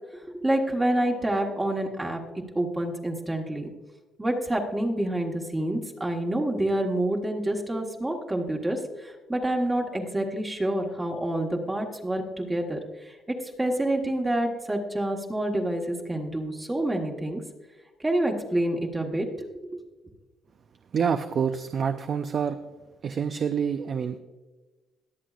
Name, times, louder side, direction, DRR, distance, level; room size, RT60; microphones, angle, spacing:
voice 1, 0.4-2.2 2.5-3.7 4.2-17.4 18.0-19.8, right 1 dB, 15° right, 0 dB, 1.3 m, -28 dB
voice 2, 20.9-22.6 23.0-24.2, right 7 dB, 50° right, 8 dB, 0.5 m, -27 dB
21.5 x 7.7 x 2.5 m, 1.2 s
cardioid pair, 110°, 0 cm